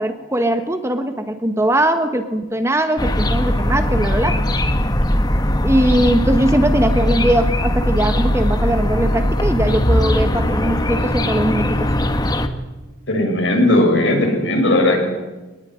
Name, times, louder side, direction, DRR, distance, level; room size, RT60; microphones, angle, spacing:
voice 1, 0.0-4.4 5.6-11.9 12.2-12.3, right 1 dB, 15° right, 8 dB, 1.3 m, -20 dB
sound 1, 3.0-12.5, left 1 dB, 20° left, 1.3 m, -19 dB
voice 2, 13.1-15.0, left 1 dB, 60° left, 2 dB, 7.1 m, -16 dB
23.0 x 19.5 x 9.7 m, 1.1 s
head